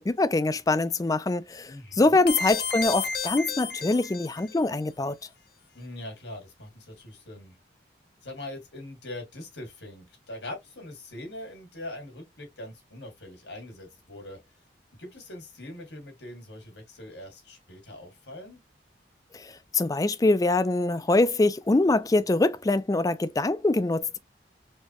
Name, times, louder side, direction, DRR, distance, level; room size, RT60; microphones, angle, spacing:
voice 1, 0.0-5.2 19.3-24.2, left 2 dB, 20° left, 0.3 m, -24 dB
voice 2, 1.6-2.2 5.7-7.6 8.2-14.4 15.0-18.6, left 1 dB, 75° left, 2.1 m, -42 dB
sound 1, 2.3-4.6, left 5 dB, 60° left, 0.7 m, -32 dB
4.3 x 2.8 x 3.0 m
head